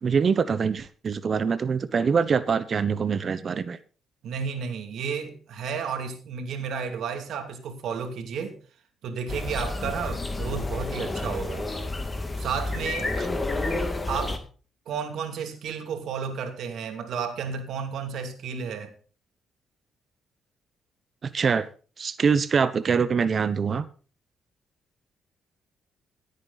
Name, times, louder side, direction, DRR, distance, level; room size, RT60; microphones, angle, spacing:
voice 1, 0.0-3.8 13.2-13.3 21.2-21.7 22.0-23.8, right 6 dB, 45° right, 0.9 m, -24 dB
voice 2, 4.2-8.6 9.0-11.7 12.4-13.2 14.1-14.4 14.9-18.9, right 6 dB, 75° right, 2.6 m, -32 dB
sound 1, 9.3-14.4, left 2 dB, 20° left, 2.1 m, -30 dB
16.5 x 8.6 x 4.1 m
cardioid pair, 90°, 0 cm